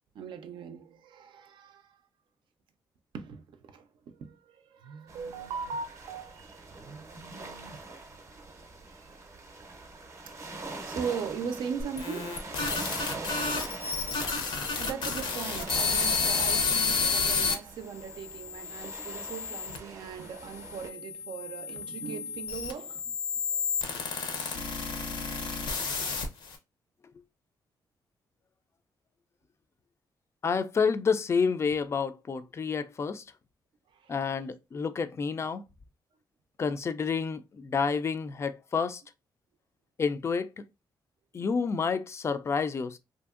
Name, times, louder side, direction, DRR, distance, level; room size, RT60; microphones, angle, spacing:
voice 1, 0.1-2.0 3.1-7.8 8.8-9.2 10.3-10.4 10.8-12.4 14.8-23.2 33.9-34.5, right 6 dB, 75° right, 0.4 m, -39 dB
sound 1, 5.1-20.9, right 3 dB, 35° right, 0.6 m, -43 dB
sound 2, 11.8-17.5 18.2-19.8 20.6-26.6, left 4 dB, 75° left, 0.7 m, -31 dB
voice 2, 30.4-33.2 34.1-35.6 36.6-39.0 40.0-40.5 41.3-43.0, left 5 dB, 35° left, 0.3 m, -29 dB
2.7 x 2.6 x 2.3 m
cardioid pair, 100°, 8 cm